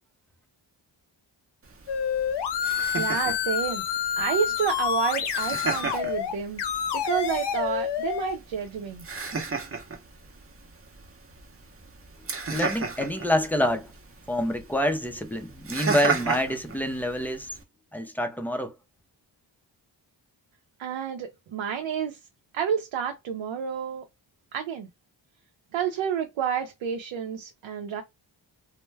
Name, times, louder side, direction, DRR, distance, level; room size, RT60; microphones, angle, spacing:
Laughter, 1.6-17.6, right 4 dB, 30° right, 0.7 m, -35 dB
sound 1, 1.9-6.3 6.6-8.3, left 8 dB, 65° left, 0.6 m, -28 dB
voice 1, 2.9-3.8 4.2-6.6 6.9-9.1 20.8-22.2 22.5-24.0 24.5-24.9 25.7-28.0, right 8 dB, 80° right, 0.6 m, -30 dB
voice 2, 12.5-13.9 14.3-17.6 17.9-18.8, left 1 dB, 5° left, 0.4 m, -27 dB
2.2 x 2.0 x 3.2 m
cardioid pair, 80°, 45 cm